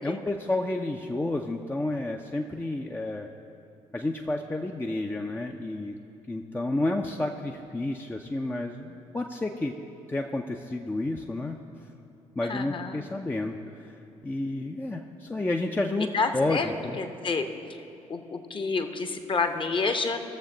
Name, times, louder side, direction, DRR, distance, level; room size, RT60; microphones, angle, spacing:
voice 1, 0.0-3.3 3.9-6.0 6.3-9.8 10.1-11.6 12.4-13.9 14.2-17.0, left 2 dB, 10° left, 2 dB, 0.6 m, -30 dB
voice 2, 12.5-13.0 16.1-16.7 17.0-17.5 18.1-20.2, left 4 dB, 30° left, 7 dB, 0.9 m, -28 dB
19.5 x 7.2 x 3.9 m, 2.9 s
figure-of-eight pair, 50°, 17 cm